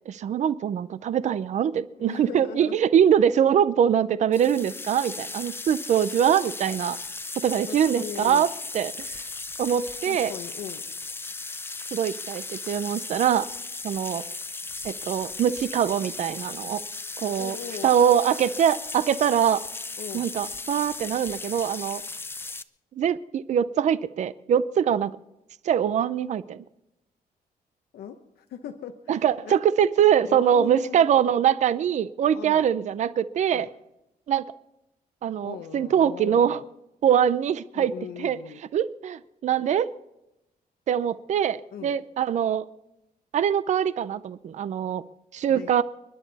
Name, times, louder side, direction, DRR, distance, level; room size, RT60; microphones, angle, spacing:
voice 1, 0.1-7.0 7.4-8.5 8.7-9.2 9.6-10.3 11.9-13.5 13.8-14.2 14.8-16.8 17.2-17.6 17.8-19.6 20.1-22.0 23.0-25.2 25.6-26.6 29.1-33.7 34.3-34.5 35.2-36.6 37.0-37.9 38.2-38.4 38.7-39.9 40.9-42.6 43.3-45.0 45.3-45.8, right 9 dB, 50° right, 16 dB, 0.5 m, -23 dB
voice 2, 2.0-2.8 7.7-8.4 10.1-10.8 17.3-17.9 20.0-20.3 27.9-29.6 30.2-31.1 32.3-32.6 33.5-33.7 35.4-36.6 37.7-38.6 41.7-42.0 45.5-45.7, left 8 dB, 85° left, 6 dB, 1.0 m, -39 dB
sound 1, 4.3-22.6, left 3 dB, 15° left, 0.5 m, -36 dB
30.0 x 11.0 x 4.1 m, 0.92 s
cardioid pair, 160°, 16 cm